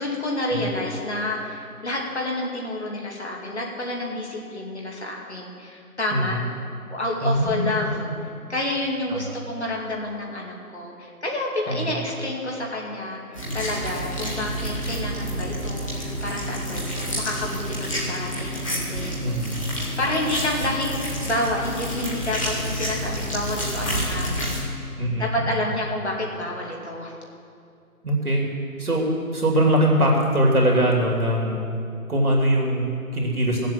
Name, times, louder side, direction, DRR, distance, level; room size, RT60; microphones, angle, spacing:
voice 1, 0.0-6.4 6.9-8.1 8.5-19.2 20.0-24.4 25.2-27.1, left 1 dB, 45° left, -1 dB, 2.5 m, -29 dB
voice 2, 6.1-6.4 7.2-8.2 9.1-9.3 11.7-12.0 19.2-19.6 25.0-25.7 28.0-28.4 28.8-31.7 32.1-33.7, right 1 dB, 70° right, -1 dB, 2.8 m, -22 dB
sound 1, 13.3-24.6, equal, 20° left, 2.1 m, -29 dB
16.0 x 7.5 x 7.5 m, 2.5 s
figure-of-eight pair, 165°, 45 cm